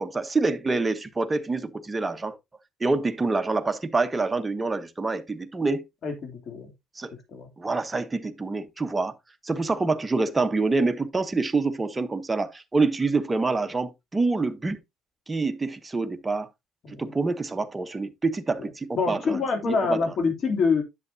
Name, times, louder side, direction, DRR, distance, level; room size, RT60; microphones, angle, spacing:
voice 1, 0.0-2.4 2.8-5.8 7.0-7.1 7.6-9.1 9.4-14.8 15.3-16.5 17.0-20.0, right 3 dB, 20° right, 0.9 m, -26 dB
voice 2, 6.0-6.7 7.3-7.5 9.5-9.6 16.8-17.1 18.6-18.7 19.0-20.8, left 4 dB, 50° left, 2.7 m, -26 dB
10.5 x 6.5 x 2.7 m
cardioid pair, 110°, 0 cm